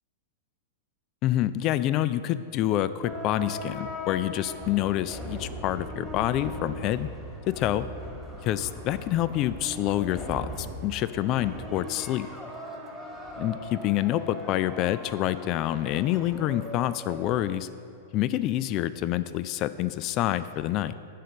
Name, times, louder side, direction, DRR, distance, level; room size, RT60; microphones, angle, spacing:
voice 1, 1.2-7.1 7.5-7.9 8.4-12.3 13.4-17.7 18.1-20.9, left 13 dB, 40° left, 14 dB, 0.3 m, -27 dB
sound 1, 3.0-17.5, equal, 5° left, 1.6 m, -39 dB
7.6 x 5.1 x 6.9 m, 2.4 s
figure-of-eight pair, 100°, 0 cm